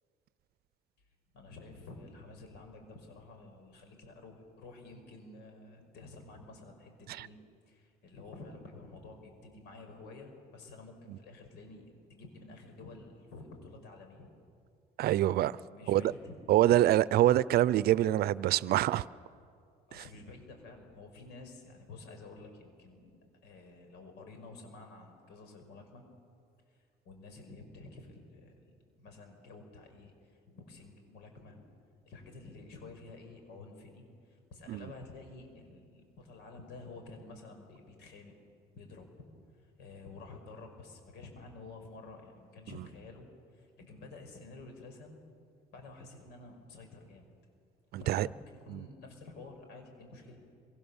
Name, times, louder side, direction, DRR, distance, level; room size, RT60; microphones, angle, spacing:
voice 1, 1.3-7.4 7.7-11.8 12.1-14.3 15.6-16.5 19.9-26.0 26.7-31.6 32.1-38.3 38.7-39.1 39.6-45.2 45.7-47.3 48.0-50.4, left 3 dB, 85° left, 5.5 m, -50 dB
voice 2, 15.0-15.6 15.9-16.1 16.5-19.1 19.9-20.0 34.7-34.8 48.1-48.3 48.7-48.8, right 13 dB, 70° right, 0.6 m, -25 dB
26.5 x 24.5 x 7.2 m
cardioid pair, 110°, 17 cm